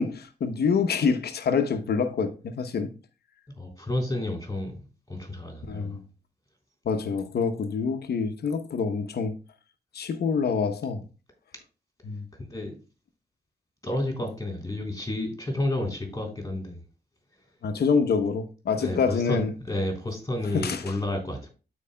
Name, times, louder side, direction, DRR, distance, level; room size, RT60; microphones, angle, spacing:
voice 1, 0.0-2.9 5.7-6.0 6.8-9.3 9.9-11.0 12.0-12.3 17.6-19.5 20.5-20.8, left 5 dB, 70° left, 0.9 m, -26 dB
voice 2, 3.6-4.8 5.1-6.0 12.5-12.7 13.8-16.8 18.8-21.5, left 1 dB, 20° left, 3.7 m, -31 dB
12.5 x 4.8 x 2.3 m
cardioid pair, 65°, 17 cm